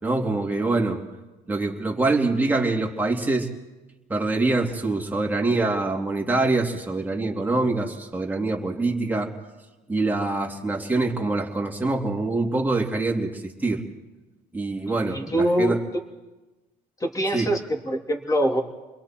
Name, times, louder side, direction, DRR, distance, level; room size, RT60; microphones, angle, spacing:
voice 1, 0.0-1.0 1.5-3.5 4.1-9.3 9.9-13.8 14.5-15.8 17.3-17.5, right 2 dB, 10° right, 0 dB, 2.9 m, -24 dB
voice 2, 15.1-16.0 17.0-18.6, equal, 20° left, 2 dB, 3.0 m, -24 dB
30.0 x 22.0 x 4.5 m, 1.1 s
cardioid pair, 110°, 17 cm